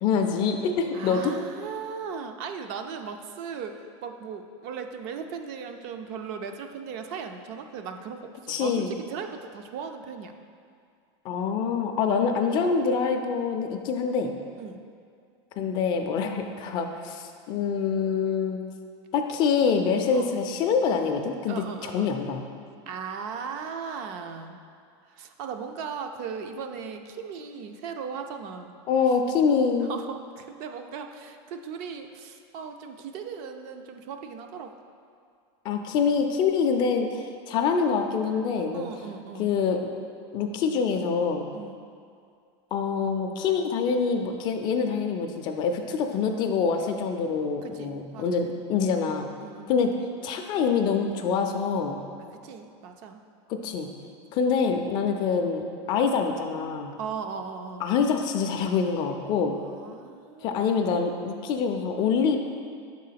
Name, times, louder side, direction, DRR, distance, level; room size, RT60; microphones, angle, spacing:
voice 1, 0.0-1.3 8.5-8.9 11.2-14.3 15.6-18.6 19.1-22.4 28.9-29.9 35.6-38.9 39.4-39.8 40.3-41.5 42.7-49.3 49.7-49.9 50.2-52.0 53.6-53.9 54.3-56.9 57.8-59.6 60.4-62.4, left 5 dB, 30° left, 5 dB, 0.4 m, -25 dB
voice 2, 0.9-10.3 14.6-14.8 20.1-20.4 21.5-22.2 22.9-24.6 25.1-28.8 29.9-34.7 38.7-39.5 41.5-41.8 47.6-48.3 48.9-49.7 52.4-53.2 57.0-57.9 59.5-60.9, right 6 dB, 45° right, 6 dB, 0.4 m, -38 dB
5.6 x 3.7 x 5.7 m, 2.3 s
supercardioid pair, 160°, 15 cm